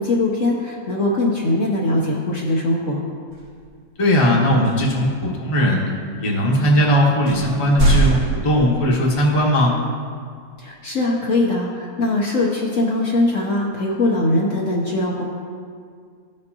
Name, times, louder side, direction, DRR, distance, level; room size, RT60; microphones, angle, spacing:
voice 1, 0.0-3.0 10.6-15.2, left 2 dB, 60° left, -3 dB, 1.0 m, -21 dB
sound 1, 3.3-3.6 4.6-5.0 5.7-5.8 6.6-6.7 7.3-9.2, right 2 dB, 65° right, 2.1 m, -21 dB
voice 2, 4.0-5.8 6.2-9.7, equal, 25° left, -2 dB, 0.9 m, -18 dB
14.5 x 5.2 x 2.8 m, 2.1 s
omnidirectional pair, 1.7 m